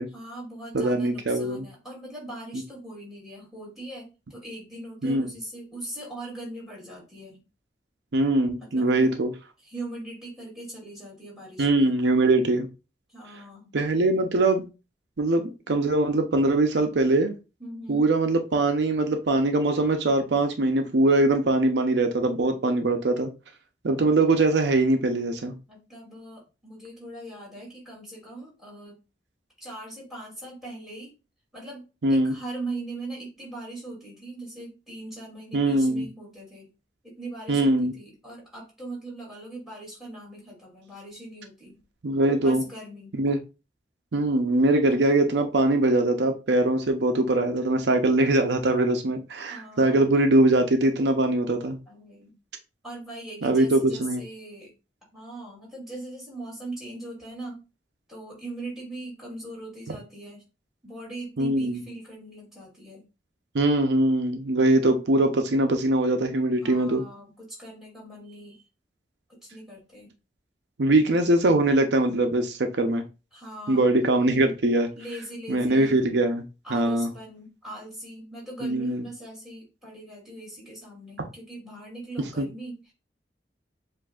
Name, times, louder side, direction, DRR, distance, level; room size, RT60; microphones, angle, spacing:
voice 1, 0.1-7.4 8.6-9.1 9.6-12.0 13.1-13.7 17.6-18.1 25.7-29.0 29.6-31.1 31.5-36.7 37.0-41.8 42.4-43.1 49.5-50.1 51.9-52.3 52.8-54.7 55.1-57.6 58.1-60.4 60.8-63.0 66.6-68.6 69.3-70.1 73.3-73.9 74.9-76.0 76.6-82.9, right 2 dB, 5° right, 2.4 m, -40 dB
voice 2, 0.7-1.7 5.0-5.3 8.1-9.3 11.6-12.7 13.7-14.6 15.2-17.4 17.9-23.3 23.8-25.6 32.0-32.3 35.5-36.1 37.5-37.9 42.0-42.6 43.2-43.4 44.1-51.8 53.4-54.2 61.4-61.8 63.5-67.0 70.8-73.0 73.7-74.9 75.5-76.4 76.7-77.1 78.6-79.0 82.4-82.5, right 2 dB, 85° right, 0.6 m, -22 dB
7.3 x 2.6 x 2.3 m
head